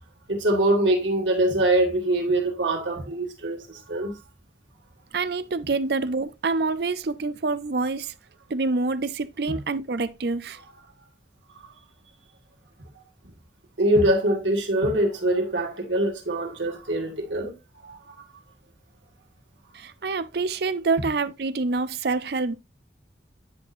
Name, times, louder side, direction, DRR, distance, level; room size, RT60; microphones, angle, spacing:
voice 1, 0.3-4.1 13.8-17.5 17.8-18.0, right 1 dB, 85° right, 1.9 m, -23 dB
voice 2, 5.1-8.1 8.5-10.6 19.7-22.6, right 3 dB, 55° right, 0.5 m, -26 dB
10.0 x 4.3 x 2.6 m
head